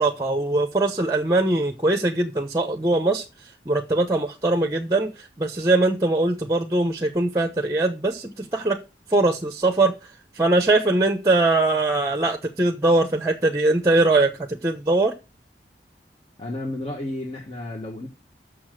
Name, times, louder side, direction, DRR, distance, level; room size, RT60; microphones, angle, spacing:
voice 1, 0.0-3.2 3.7-8.8 9.1-9.9 10.3-15.1, right 2 dB, 20° right, 0.9 m, -21 dB
voice 2, 16.4-18.1, left 1 dB, 30° left, 1.4 m, -32 dB
7.0 x 6.4 x 7.8 m
head